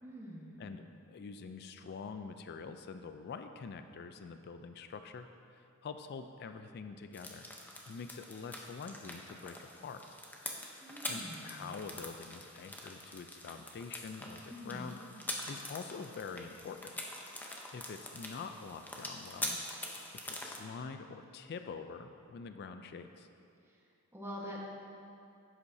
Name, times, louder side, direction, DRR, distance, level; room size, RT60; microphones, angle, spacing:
voice 1, 0.0-0.7 10.8-11.7 14.5-14.9 24.1-24.7, equal, 10° right, -4 dB, 1.2 m, -45 dB
voice 2, 0.6-7.5 7.9-10.2 10.8-16.9 17.7-19.6 19.9-20.0 20.2-23.3, left 5 dB, 50° left, 8 dB, 0.4 m, -46 dB
sound 1, 7.1-20.6, left 1 dB, 10° left, 0.7 m, -44 dB
11.0 x 8.3 x 2.7 m, 2.6 s
head